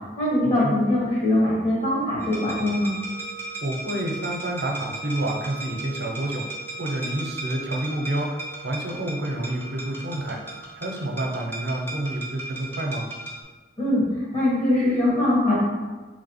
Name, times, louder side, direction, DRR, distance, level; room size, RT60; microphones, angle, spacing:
voice 1, 0.2-2.9 13.8-15.6, left 1 dB, 35° left, -5 dB, 1.4 m, -22 dB
sound 1, 2.2-13.4, right 2 dB, 10° left, 0.7 m, -36 dB
voice 2, 3.6-6.4 6.8-10.4 10.8-13.1, right 1 dB, 75° right, 2 dB, 0.7 m, -29 dB
3.7 x 3.2 x 4.2 m, 1.3 s
head